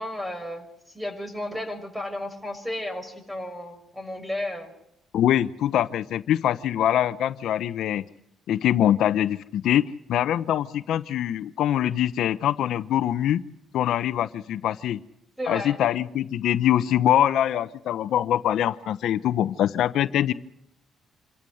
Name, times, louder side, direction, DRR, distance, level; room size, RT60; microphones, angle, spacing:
voice 1, 0.0-4.7 15.4-15.8, left 1 dB, 5° right, 8 dB, 5.9 m, -33 dB
voice 2, 5.1-8.0 8.5-13.4 13.7-15.0 15.5-20.3, left 11 dB, 80° left, 14 dB, 0.8 m, -23 dB
27.0 x 14.0 x 7.8 m, 0.81 s
cardioid pair, 90°, 0 cm